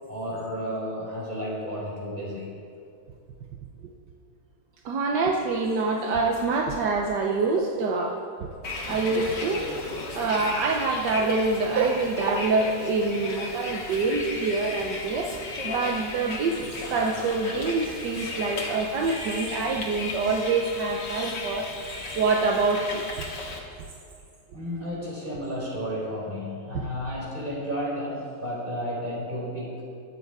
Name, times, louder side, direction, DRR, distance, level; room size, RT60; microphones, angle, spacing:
voice 1, 0.1-2.5 24.5-29.8, equal, 30° right, -5 dB, 4.4 m, -32 dB
voice 2, 4.8-8.5 8.9-9.7 10.1-16.6 16.9-23.0 26.7-26.9, right 3 dB, 75° right, 1 dB, 1.5 m, -26 dB
Bus, 8.6-23.6, left 2 dB, 80° left, 2.4 m, -35 dB
23.0 x 7.8 x 4.8 m, 2.5 s
omnidirectional pair, 1.9 m